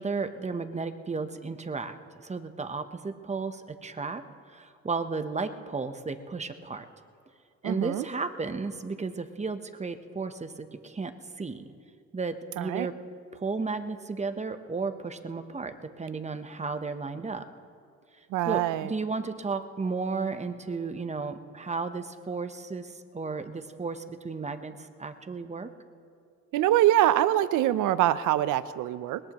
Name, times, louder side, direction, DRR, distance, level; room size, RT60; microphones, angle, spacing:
voice 1, 0.0-2.0 2.2-4.2 4.5-6.9 7.6-11.1 11.4-11.7 12.1-12.9 13.3-17.4 18.4-25.7, right 4 dB, 25° right, 8 dB, 0.9 m, -33 dB
voice 2, 7.6-8.0 12.6-12.9 18.3-18.9 26.5-29.2, right 13 dB, 85° right, 15 dB, 0.6 m, -24 dB
22.0 x 20.5 x 3.0 m, 2.3 s
cardioid pair, 90°, 30 cm